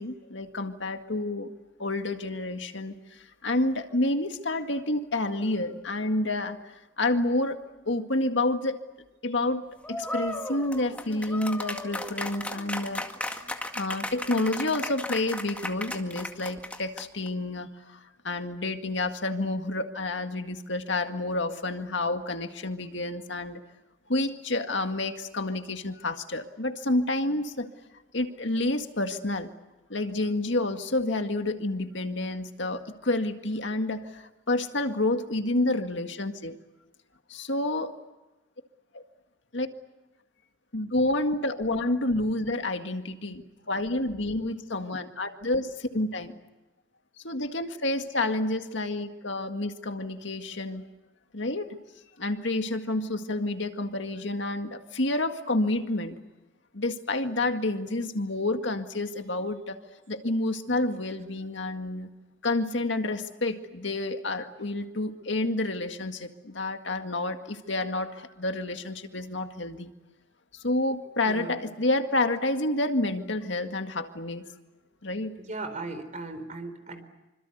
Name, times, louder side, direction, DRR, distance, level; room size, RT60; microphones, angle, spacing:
voice 1, 0.0-1.5 1.8-8.8 9.2-13.4 13.7-23.6 24.1-27.7 28.1-29.5 29.9-36.6 37.3-37.9 38.9-39.0 39.5-39.7 40.7-46.4 47.2-50.9 51.3-51.8 52.2-56.2 56.7-59.8 60.1-62.1 62.4-69.9 70.5-74.5 75.0-75.3, left 2 dB, 65° left, 6 dB, 2.0 m, -29 dB
sound 1, 9.8-17.3, left 1 dB, 5° left, 2.0 m, -35 dB
voice 2, 71.3-71.6 75.4-77.0, right 2 dB, 35° right, 8 dB, 4.5 m, -37 dB
26.5 x 26.0 x 8.1 m, 1.0 s
head